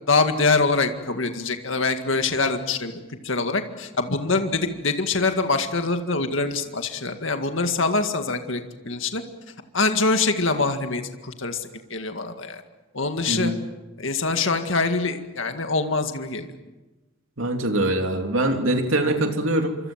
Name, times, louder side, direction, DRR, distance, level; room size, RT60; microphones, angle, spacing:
voice 1, 0.1-9.2 9.7-12.6 12.9-13.5 14.0-16.5, left 3 dB, 65° left, 6 dB, 2.0 m, -24 dB
voice 2, 17.4-19.8, right 1 dB, 75° right, 4 dB, 3.2 m, -23 dB
26.5 x 25.5 x 7.5 m, 1.1 s
head